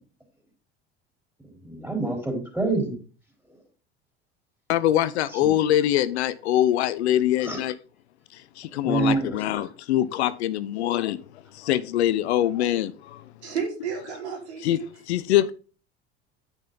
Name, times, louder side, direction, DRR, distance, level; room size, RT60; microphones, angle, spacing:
voice 1, 1.6-3.0 5.4-5.5 7.4-7.6 8.8-9.6, right 3 dB, 5° right, 3.8 m, -27 dB
voice 2, 4.7-7.7 8.6-11.2 11.6-13.2 14.6-14.8 15.1-15.5, left 12 dB, 80° left, 0.6 m, -23 dB
voice 3, 13.4-14.9, right 6 dB, 90° right, 3.2 m, -32 dB
9.4 x 5.4 x 3.8 m
hypercardioid pair, 80°, 33 cm